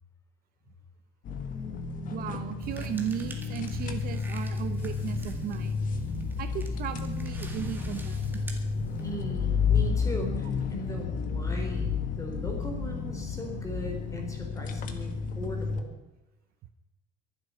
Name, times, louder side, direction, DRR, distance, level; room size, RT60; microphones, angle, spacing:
sound 1, 1.3-15.8, left 5 dB, 45° left, 1.7 m, -31 dB
voice 1, 2.1-5.7 6.4-8.4, right 10 dB, 50° right, 9 dB, 0.9 m, -36 dB
sound 2, 2.6-9.3, right 3 dB, 10° right, 2.0 m, -44 dB
voice 2, 9.0-15.9, left 1 dB, 15° left, 2 dB, 3.7 m, -39 dB
23.5 x 8.0 x 5.7 m, 1.0 s
cardioid pair, 165°, 20 cm